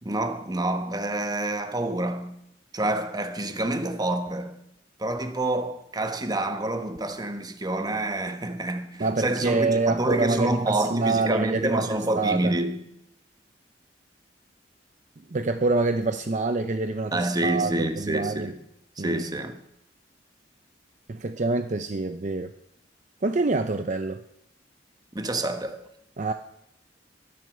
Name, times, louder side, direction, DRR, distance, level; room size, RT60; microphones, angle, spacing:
voice 1, 0.0-2.4 2.7-4.6 5.0-12.8 17.1-18.6 19.0-19.6 25.1-25.9, right 2 dB, 20° right, 1.2 m, -28 dB
voice 2, 9.0-12.5 15.3-18.5 19.0-19.2 21.1-22.5 23.2-24.2 26.2-26.3, right 3 dB, 45° right, 0.6 m, -26 dB
22.0 x 7.8 x 6.7 m
head